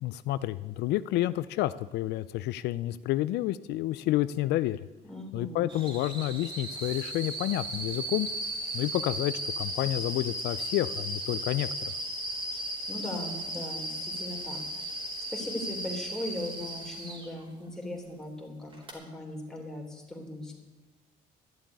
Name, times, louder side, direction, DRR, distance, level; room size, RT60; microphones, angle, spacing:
voice 1, 0.0-4.9 5.3-8.3 8.7-11.9, left 15 dB, 80° left, 15 dB, 0.4 m, -30 dB
voice 2, 5.0-5.8 12.5-15.0 15.3-20.6, left 1 dB, 5° left, 0 dB, 3.3 m, -39 dB
sound 1, 5.7-17.3 18.7-18.9, right 1 dB, 30° right, 3.4 m, -36 dB
12.5 x 7.5 x 9.5 m, 1.2 s
cardioid pair, 110°, 17 cm